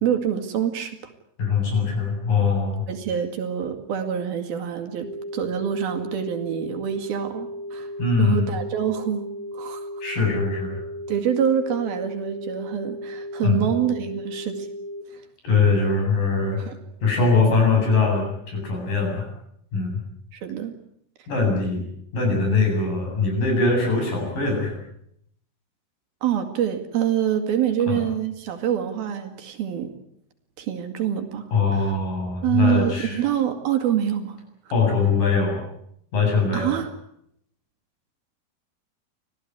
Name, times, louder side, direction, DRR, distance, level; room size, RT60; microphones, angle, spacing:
voice 1, 0.0-1.0 2.9-7.9 8.2-9.3 9.5-9.9 11.1-14.7 15.1-15.2 16.6-16.8 20.3-20.8 26.2-29.9 30.6-31.9 32.4-34.4 36.5-36.9, right 9 dB, 75° right, 6 dB, 4.1 m, -26 dB
voice 2, 1.4-2.9 8.0-8.5 10.0-10.8 13.4-13.7 15.4-16.6 17.0-19.3 19.7-20.0 21.3-21.8 22.1-24.8 27.9-28.0 31.5-33.2 34.7-35.6 36.1-36.8, left 4 dB, 60° left, 1 dB, 9.6 m, -22 dB
sound 1, 5.0-15.0, left 1 dB, 35° right, 0.6 m, -35 dB
26.0 x 17.0 x 9.7 m, 0.73 s
omnidirectional pair, 4.4 m